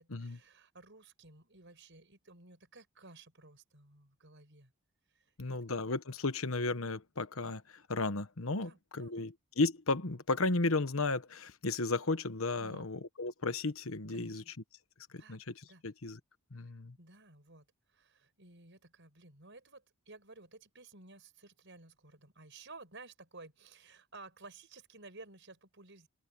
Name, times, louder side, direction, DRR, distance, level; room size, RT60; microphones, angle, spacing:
voice 1, 0.0-4.7 5.1-5.6 8.5-9.3 12.6-12.9 14.1-14.4 15.2-15.8 17.0-26.1, right 3 dB, 55° right, 6.1 m, -55 dB
voice 2, 5.4-14.4 15.1-15.5 15.8-16.2 16.5-17.0, left 3 dB, 65° left, 1.2 m, -34 dB
open air
head